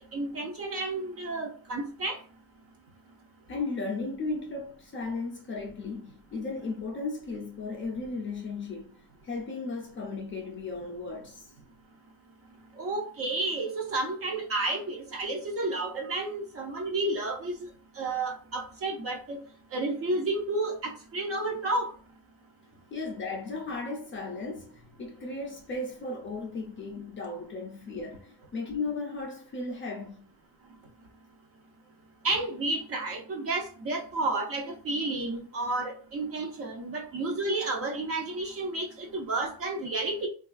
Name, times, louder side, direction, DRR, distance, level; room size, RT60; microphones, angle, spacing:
voice 1, 0.1-2.2 12.8-17.7 18.0-19.4 19.7-21.9 32.2-40.3, right 2 dB, 35° right, 0.5 m, -31 dB
voice 2, 3.5-9.0 9.2-11.5 22.9-30.3, left 3 dB, 30° left, 0.4 m, -35 dB
3.7 x 2.3 x 2.4 m
cardioid pair, 180°, 42 cm